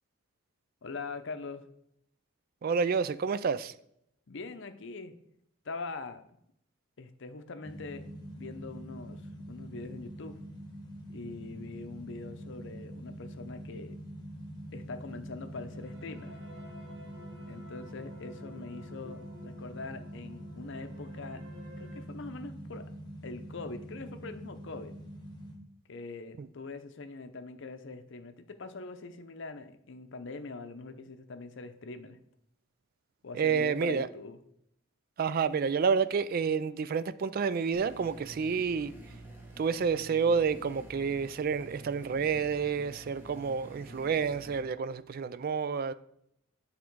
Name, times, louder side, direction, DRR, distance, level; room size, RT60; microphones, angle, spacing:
voice 1, 0.8-1.7 4.3-5.1 5.6-6.2 7.0-9.2 9.5-10.4 11.1-14.0 14.7-16.4 17.5-21.4 21.8-22.8 23.2-24.9 25.9-32.2 33.2-34.4, left 3 dB, 60° left, 0.6 m, -43 dB
voice 2, 2.6-3.7 26.4-26.5 33.3-34.1 35.2-38.9 39.6-45.9, right 6 dB, 45° right, 0.3 m, -29 dB
sound 1, 7.6-25.6, equal, 20° left, 1.4 m, -45 dB
sound 2, 15.5-22.0, left 1 dB, 70° right, 1.7 m, -53 dB
sound 3, 37.7-44.6, right 2 dB, 10° right, 1.1 m, -50 dB
9.4 x 3.7 x 4.6 m
head